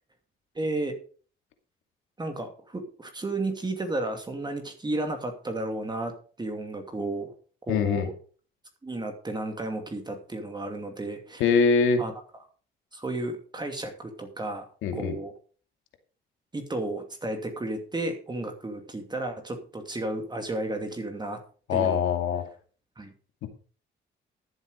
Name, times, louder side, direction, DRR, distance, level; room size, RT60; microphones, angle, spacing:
voice 1, 0.5-0.9 2.2-7.3 7.7-8.1 8.8-11.4 12.0-12.1 12.9-14.7 14.9-15.3 16.5-21.4 21.7-22.1 23.0-23.1, right 2 dB, 20° right, 5 dB, 2.6 m, -33 dB
voice 2, 7.7-8.1 11.4-12.0 14.8-15.2 21.7-22.4 23.4-23.5, left 6 dB, 90° left, 6 dB, 2.5 m, -23 dB
13.5 x 7.9 x 5.1 m, 0.41 s
cardioid pair, 90°, 20 cm